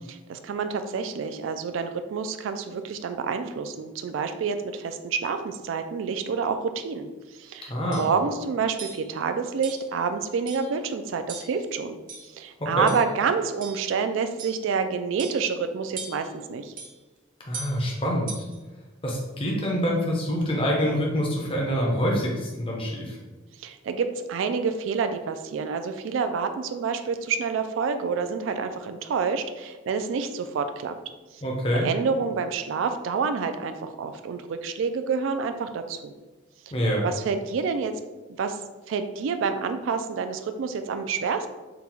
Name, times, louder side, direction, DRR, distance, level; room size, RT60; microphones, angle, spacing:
voice 1, 0.1-7.1 7.4-12.0 12.3-16.7 23.6-30.9 31.3-31.4 31.7-36.1 37.0-37.9 38.4-38.6 38.9-41.5, right 5 dB, 70° right, 8 dB, 0.3 m, -28 dB
sound 1, 7.4-7.5 7.9-8.2 8.8-9.1 9.6-9.9 10.5-10.8 11.3-11.6 12.1-12.5 12.9-13.1 13.6-13.9 14.4-14.7 15.2-15.6 16.0-16.4 16.8-17.0 17.5-17.8 18.3-18.6, right 4 dB, 40° right, 0.7 m, -40 dB
voice 2, 7.7-8.0 12.6-12.9 17.5-18.3 19.0-23.2 31.4-31.9 36.7-37.0, equal, 25° left, -2 dB, 0.6 m, -26 dB
3.9 x 2.3 x 4.3 m, 1.2 s
head